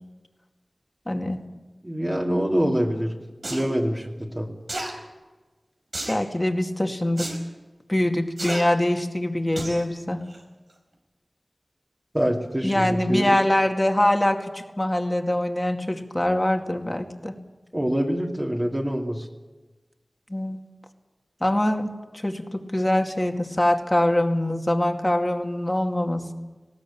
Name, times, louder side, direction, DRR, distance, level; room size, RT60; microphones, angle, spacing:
voice 1, 1.1-1.4 6.1-7.3 7.9-10.2 12.6-17.3 20.3-20.6 21.4-26.3, left 1 dB, 25° left, 4 dB, 2.2 m, -24 dB
voice 2, 1.8-3.1 3.5-4.5 12.1-13.4 17.7-19.2, equal, 25° right, -2 dB, 2.7 m, -25 dB
sound 1, 3.4-3.7 4.7-4.9 5.9-6.2 7.2-7.4 8.4-8.6 9.6-9.8 10.3-10.4, right 1 dB, 80° right, 4.9 m, -31 dB
20.0 x 17.5 x 8.8 m, 1.2 s
wide cardioid pair, 40°, 0 cm